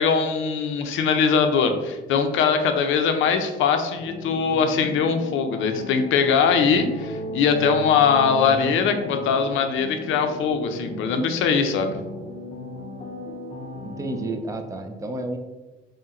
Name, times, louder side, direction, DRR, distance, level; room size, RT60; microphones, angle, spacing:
voice 1, 0.0-12.0, left 6 dB, 85° left, 6 dB, 0.5 m, -21 dB
sound 1, 4.0-14.4, left 1 dB, 35° left, 0.5 m, -36 dB
voice 2, 8.3-9.3 13.8-15.4, right 2 dB, 15° right, 5 dB, 0.4 m, -32 dB
3.8 x 2.1 x 4.0 m, 1.2 s
cardioid pair, 90°, 20 cm